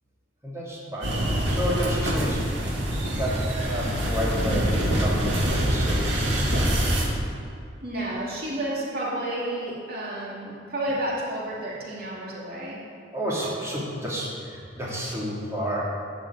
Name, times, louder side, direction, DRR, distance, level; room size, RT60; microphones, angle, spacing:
voice 1, 0.4-2.4 3.1-6.7 13.1-15.8, equal, 15° right, -6 dB, 3.1 m, -31 dB
sound 1, 1.0-7.0, equal, 80° right, 2.9 m, -25 dB
voice 2, 7.8-12.8, right 1 dB, 50° right, -6 dB, 2.7 m, -31 dB
13.0 x 6.5 x 8.8 m, 2.3 s
head